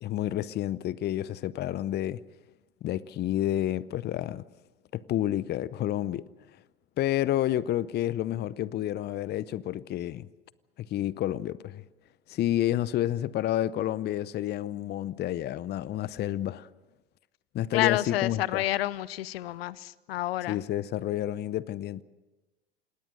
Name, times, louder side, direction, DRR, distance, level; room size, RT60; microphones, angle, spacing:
voice 1, 0.0-2.2 2.8-4.4 4.9-6.2 7.0-10.3 10.8-11.8 12.3-16.7 17.5-18.6 20.5-22.0, left 13 dB, 30° left, 0.7 m, -30 dB
voice 2, 17.7-20.6, left 15 dB, 65° left, 0.7 m, -29 dB
28.0 x 20.0 x 6.4 m
figure-of-eight pair, 80°, 32 cm